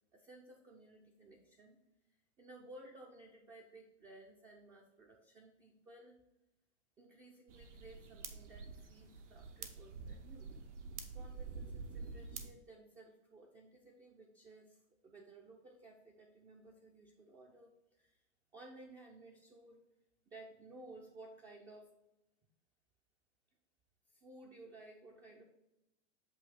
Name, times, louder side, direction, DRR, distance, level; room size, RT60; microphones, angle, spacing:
voice 1, 0.1-1.8 2.4-6.2 7.0-10.6 11.1-18.2 18.5-19.8 20.3-22.0 24.1-25.4, right 2 dB, 10° right, 0 dB, 0.3 m, -57 dB
sound 1, 7.5-12.5, right 4 dB, 80° right, 0.9 m, -48 dB
7.8 x 2.7 x 5.6 m, 0.90 s
hypercardioid pair, 120°, 35 cm